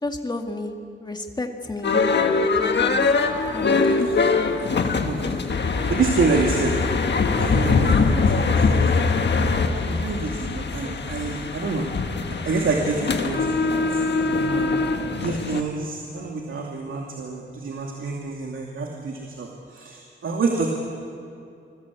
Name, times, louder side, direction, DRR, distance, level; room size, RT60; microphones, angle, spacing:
voice 1, 0.0-0.7 1.0-1.9 2.4-3.1 3.5-3.8, left 2 dB, 20° left, 3 dB, 2.1 m, -32 dB
sound 1, 1.8-15.6, left 4 dB, 60° left, 1.5 m, -22 dB
voice 2, 4.7-5.4 5.9-6.8 7.4-9.4 9.7-11.9 12.4-14.8 15.2-20.7, right 4 dB, 85° right, 0 dB, 2.5 m, -28 dB
27.0 x 21.0 x 8.4 m, 2.5 s
wide cardioid pair, 145°, 20 cm